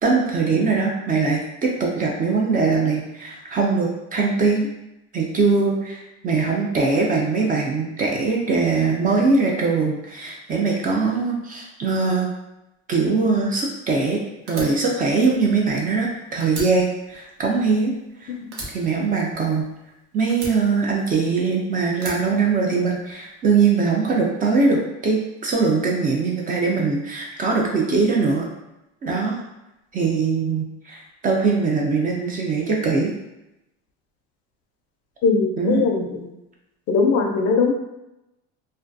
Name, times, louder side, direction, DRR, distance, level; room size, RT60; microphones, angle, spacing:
voice 1, 0.0-4.7 5.1-12.3 12.9-14.2 14.5-17.9 18.2-18.3 18.7-19.7 20.1-28.5 29.0-29.4 29.9-33.1 35.6-35.8, right 4 dB, 25° right, -1 dB, 0.3 m, -21 dB
Fire, 14.5-16.1 16.4-18.1 18.5-19.8 20.3-21.4 21.9-23.1, right 2 dB, 50° right, 0.8 m, -37 dB
voice 2, 35.2-36.3 36.9-37.7, left 4 dB, 50° left, 3 dB, 0.4 m, -20 dB
2.3 x 2.1 x 2.5 m, 0.91 s
supercardioid pair, 120°, 33 cm